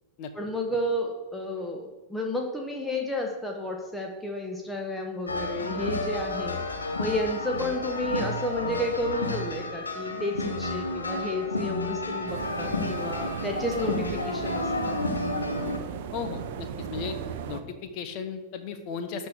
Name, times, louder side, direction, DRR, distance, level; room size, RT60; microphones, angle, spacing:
voice 1, 0.3-6.6 7.0-15.0, left 1 dB, 5° left, 1 dB, 1.3 m, -31 dB
sound 1, 5.3-15.8, left 2 dB, 75° left, 1.0 m, -31 dB
sound 2, 12.3-17.6, right 7 dB, 50° right, 0.8 m, -36 dB
voice 2, 16.1-17.2 17.5-19.3, left 6 dB, 45° left, 8 dB, 1.3 m, -35 dB
12.0 x 4.5 x 7.0 m, 1.3 s
figure-of-eight pair, 90°, 0 cm